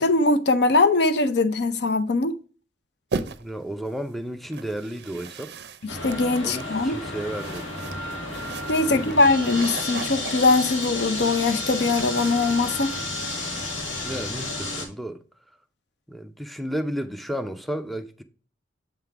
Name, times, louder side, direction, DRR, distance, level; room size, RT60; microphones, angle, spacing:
voice 1, 0.0-2.4 5.8-7.0 8.7-12.9, left 3 dB, 60° left, 0.6 m, -21 dB
sound 1, 3.1-3.7 4.5-13.1, right 4 dB, 55° right, 0.5 m, -38 dB
voice 2, 3.4-5.5 6.4-8.0 8.8-9.2 14.0-15.2 16.1-18.2, right 1 dB, ahead, 0.5 m, -33 dB
sound 2, 5.9-14.9, left 2 dB, 90° left, 1.9 m, -32 dB
7.8 x 3.7 x 4.6 m
head